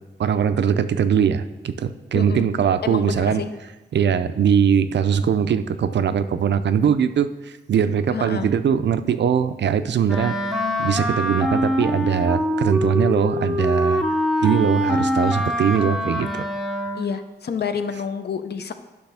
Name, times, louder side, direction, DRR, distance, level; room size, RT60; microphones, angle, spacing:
voice 1, 0.2-3.4 3.9-10.4 10.8-14.0 14.4-16.4, right 7 dB, 75° right, 12 dB, 0.4 m, -21 dB
voice 2, 2.1-2.5 2.8-3.5 8.1-8.5 16.9-18.8, left 7 dB, 65° left, 9 dB, 0.6 m, -29 dB
Wind instrument woodwind instrument, 10.1-17.2, equal, ahead, 0.6 m, -24 dB
10.5 x 6.2 x 3.4 m, 1.1 s
wide cardioid pair, 145°, 18 cm